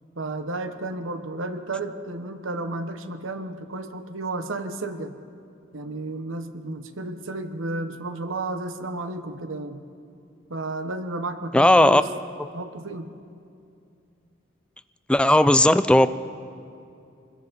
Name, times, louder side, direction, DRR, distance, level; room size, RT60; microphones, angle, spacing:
voice 1, 0.2-5.2 5.7-9.8 10.5-12.1 12.5-13.2, right 2 dB, 80° right, 1.1 m, -32 dB
voice 2, 11.5-12.0 15.1-16.1, left 1 dB, 5° left, 0.5 m, -16 dB
25.0 x 21.0 x 5.3 m
head